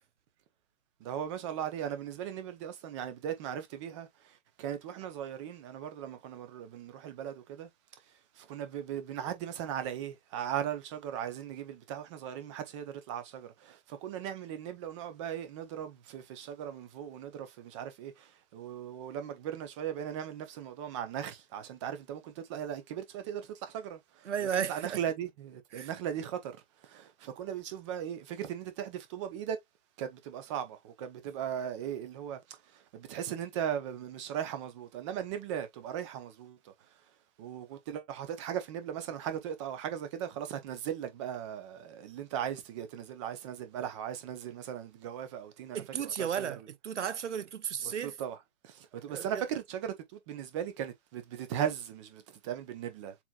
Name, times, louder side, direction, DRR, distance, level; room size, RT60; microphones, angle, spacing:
voice 1, 1.0-7.7 8.4-24.3 24.7-26.6 26.8-29.6 30.0-36.7 37.4-46.5 48.0-48.4 48.6-53.2, right 9 dB, 20° right, 0.9 m, -38 dB
voice 2, 24.2-25.0 25.7-25.9 45.7-48.2 49.1-49.5, right 8 dB, 55° right, 0.8 m, -34 dB
7.1 x 3.1 x 2.4 m
figure-of-eight pair, 125°, 43 cm